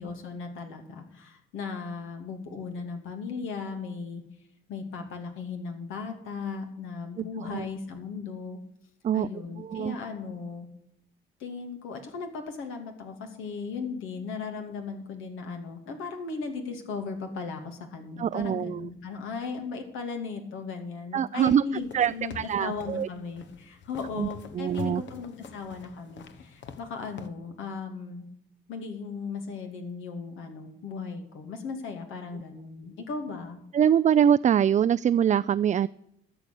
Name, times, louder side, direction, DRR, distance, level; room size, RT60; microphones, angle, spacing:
voice 1, 0.0-4.2 4.7-8.6 9.1-10.7 11.4-28.2 28.7-33.6, left 4 dB, 90° left, 4 dB, 2.7 m, -37 dB
voice 2, 9.6-10.0 18.2-18.9 21.1-21.6 21.9-23.1 24.2-24.3 24.5-25.0 33.7-35.9, right 9 dB, 40° right, 13 dB, 0.4 m, -24 dB
sound 1, 21.8-27.3, left 5 dB, 65° left, 1.2 m, -45 dB
13.0 x 7.0 x 8.5 m, 0.78 s
cardioid pair, 90°, 20 cm